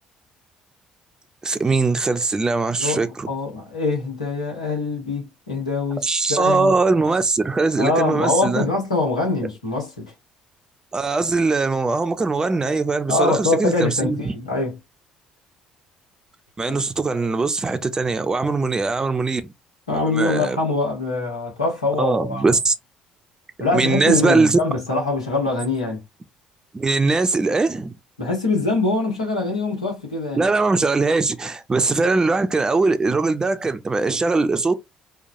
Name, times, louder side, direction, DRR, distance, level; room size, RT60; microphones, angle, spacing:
voice 1, 1.4-3.3 6.0-8.7 10.9-14.3 16.6-19.5 20.1-20.6 22.0-22.7 23.7-24.6 26.7-28.0 30.4-34.7, right 3 dB, 20° right, 0.6 m, -21 dB
voice 2, 2.8-6.7 7.8-10.0 13.1-14.8 16.7-16.8 19.9-22.6 23.6-26.0 28.2-30.4, left 3 dB, 80° left, 1.4 m, -23 dB
4.5 x 2.3 x 2.7 m
figure-of-eight pair, 50°, 3 cm